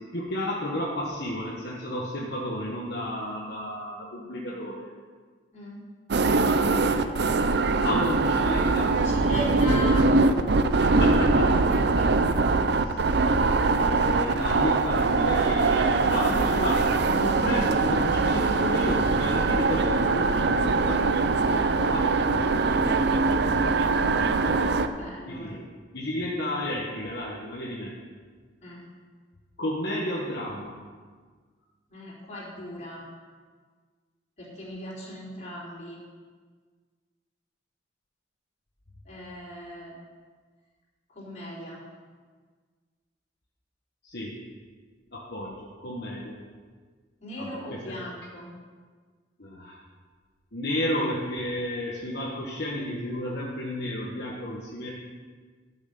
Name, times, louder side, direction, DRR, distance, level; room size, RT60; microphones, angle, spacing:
voice 1, 0.0-4.9 7.8-9.0 10.7-12.1 13.7-23.4 24.2-24.8 25.2-25.6 25.9-27.9 29.6-30.7 44.0-44.4 45.1-46.4 47.4-47.9 49.4-49.8 50.5-54.9, left 1 dB, 65° left, -4 dB, 1.5 m, -32 dB
voice 2, 5.5-5.8 6.6-7.2 9.0-10.2 12.7-13.1 24.2-24.4 24.9-25.5 28.6-28.9 31.9-33.0 34.4-36.0 39.0-39.9 41.1-41.8 47.2-48.5, equal, 40° left, -6 dB, 4.1 m, -38 dB
sound 1, 6.1-24.9, right 3 dB, 65° right, 0.6 m, -22 dB
12.0 x 6.4 x 6.8 m, 1.5 s
head